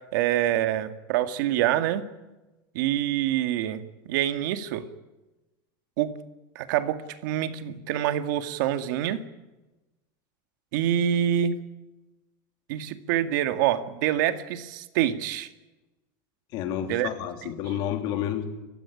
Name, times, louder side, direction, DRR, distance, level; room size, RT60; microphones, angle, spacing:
voice 1, 0.0-2.1 2.7-4.9 6.0-6.2 6.6-9.2 10.7-11.6 12.7-15.5 16.9-17.1 17.4-17.5, right 11 dB, 65° right, 9 dB, 2.0 m, -26 dB
voice 2, 16.5-18.5, left 10 dB, 40° left, 6 dB, 2.9 m, -30 dB
28.5 x 15.5 x 10.0 m, 1.1 s
supercardioid pair, 170°, 11 cm